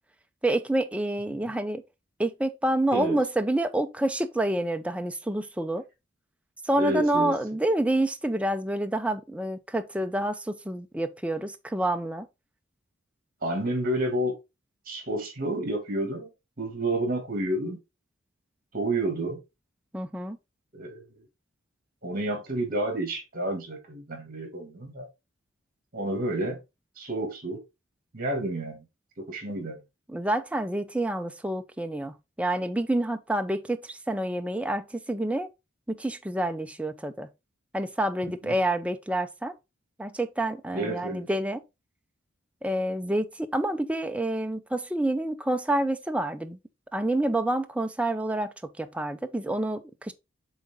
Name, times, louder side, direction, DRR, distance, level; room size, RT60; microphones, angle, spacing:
voice 1, 0.4-1.8 2.2-5.8 6.6-12.3 19.9-20.4 30.1-35.5 35.9-37.3 37.7-39.5 40.0-41.6 42.6-46.6 46.9-50.1, right 1 dB, 5° right, 0.5 m, -28 dB
voice 2, 6.8-7.3 13.4-14.3 14.9-16.3 16.6-17.8 18.7-19.4 20.7-21.0 22.0-25.1 25.9-26.6 27.0-27.6 28.1-28.8 29.2-29.8 38.4-38.5 40.7-41.3, right 1 dB, 45° right, 2.3 m, -30 dB
7.3 x 3.8 x 3.7 m
head